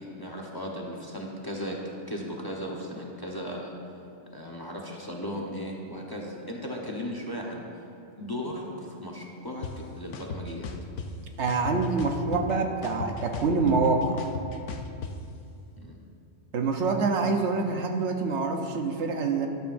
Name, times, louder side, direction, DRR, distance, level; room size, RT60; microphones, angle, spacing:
voice 1, 0.0-1.8 2.1-4.0 4.3-7.6 8.2-10.7 15.8-16.0, equal, 20° left, -2 dB, 0.9 m, -36 dB
sound 1, 9.6-9.7 10.1-11.1 11.5-12.5 12.8-15.1, left 5 dB, 75° left, 1.0 m, -36 dB
voice 2, 11.4-14.2 16.5-19.5, right 4 dB, 70° right, 4 dB, 1.1 m, -26 dB
12.5 x 12.0 x 2.6 m, 2.6 s
omnidirectional pair, 1.2 m